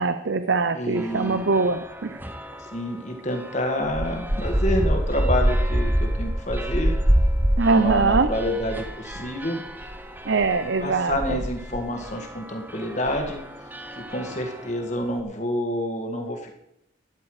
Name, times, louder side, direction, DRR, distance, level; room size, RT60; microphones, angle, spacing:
voice 1, 0.0-2.2 7.6-8.3 10.2-11.4, right 4 dB, 65° right, 10 dB, 0.6 m, -22 dB
voice 2, 0.8-1.4 2.6-7.0 7.7-9.6 10.8-13.4 14.0-16.5, left 1 dB, 35° left, 3 dB, 1.8 m, -28 dB
sound 1, 1.0-2.8 3.3-14.8, equal, 10° right, 0.8 m, -27 dB
12.5 x 9.8 x 4.9 m, 0.79 s
head